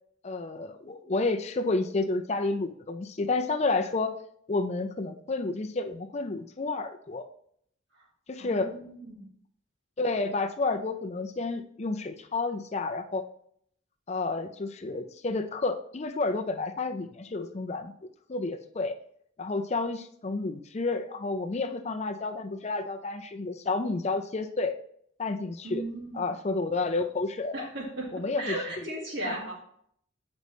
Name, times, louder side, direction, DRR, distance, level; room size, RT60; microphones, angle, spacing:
voice 1, 0.2-4.2 4.5-7.2 8.3-8.7 10.0-13.3 14.1-17.9 18.3-19.0 19.4-24.7 25.2-25.8 26.1-27.7 28.1-28.5 29.2-29.3, left 3 dB, 35° left, 7 dB, 0.5 m, -30 dB
voice 2, 8.4-9.3 25.6-26.3 27.5-29.5, right 1 dB, 60° right, -1 dB, 2.1 m, -36 dB
8.1 x 5.2 x 3.1 m, 0.65 s
head